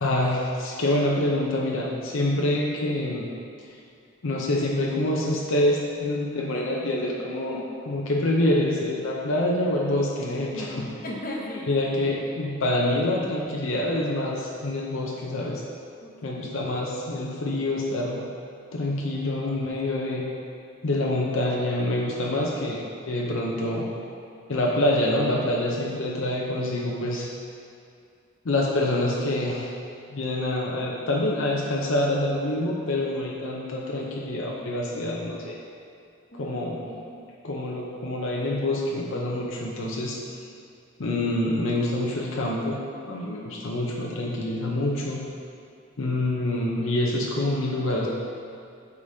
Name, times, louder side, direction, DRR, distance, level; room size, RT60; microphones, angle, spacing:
voice 1, 0.0-3.3 4.2-10.9 11.7-15.6 16.2-18.3 18.7-20.3 20.8-23.9 24.5-27.3 28.4-29.7 30.1-35.6 36.3-36.8 37.4-40.2 41.0-45.3 46.0-48.1, left 1 dB, 75° left, -2 dB, 0.6 m, -26 dB
voice 2, 10.5-11.7 16.0-16.6 36.3-37.2, left 1 dB, 40° left, -3 dB, 0.9 m, -38 dB
8.3 x 5.0 x 2.7 m, 2.4 s
head